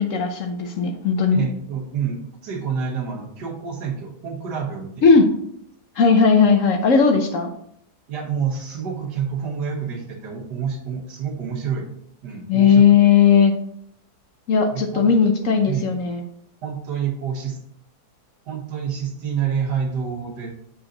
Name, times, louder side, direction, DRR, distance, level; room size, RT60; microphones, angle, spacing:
voice 1, 0.0-1.4 5.0-5.3 6.0-7.5 12.5-13.5 14.5-16.2, left 6 dB, 60° left, 5 dB, 1.0 m, -16 dB
voice 2, 1.3-5.0 8.1-11.9 12.2-12.8 14.7-15.1 15.7-16.0 16.6-17.6 18.5-20.5, right 7 dB, 90° right, 0 dB, 1.8 m, -28 dB
6.9 x 4.1 x 3.8 m, 0.71 s
omnidirectional pair, 1.7 m